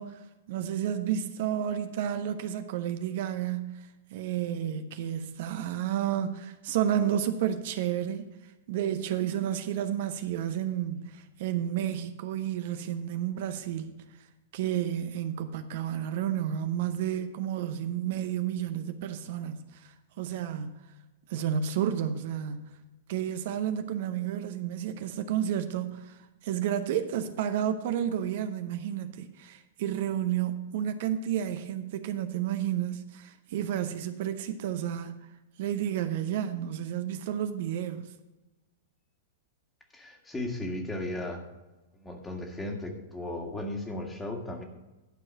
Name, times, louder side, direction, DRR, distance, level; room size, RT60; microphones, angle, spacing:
voice 1, 0.0-8.3 8.7-14.0 14.5-20.8 21.3-22.7 23.1-35.1 35.6-38.1, right 10 dB, 60° right, 0.7 m, -31 dB
voice 2, 39.9-41.4 41.9-44.6, left 1 dB, 10° left, 1.7 m, -36 dB
11.5 x 4.7 x 7.1 m
hypercardioid pair, 105°, 0 cm